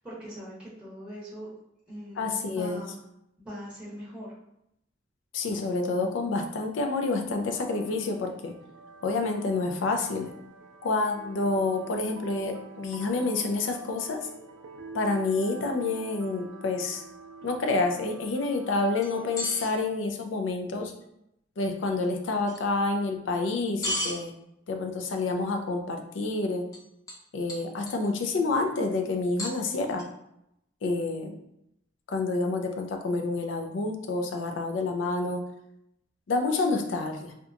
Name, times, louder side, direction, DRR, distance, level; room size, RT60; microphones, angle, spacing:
voice 1, 0.0-1.5 1.9-3.0 3.4-4.4, equal, 5° right, -7 dB, 0.8 m, -41 dB
voice 2, 2.2-2.8 5.3-8.5 9.0-10.3 10.8-14.3 14.9-17.0 17.4-20.9 21.6-24.3 24.7-26.6 27.3-30.0 30.8-31.3 32.1-35.4 36.3-37.3, left 3 dB, 80° left, 4 dB, 0.4 m, -28 dB
sound 1, 7.4-19.8, right 4 dB, 75° right, 0.3 m, -46 dB
sound 2, 19.0-19.7 22.5-22.6 23.8-24.2 26.7-26.8 27.1-27.2 27.5-28.1 29.4-30.0, left 1 dB, 20° left, 0.5 m, -32 dB
2.8 x 2.2 x 2.4 m, 0.79 s
head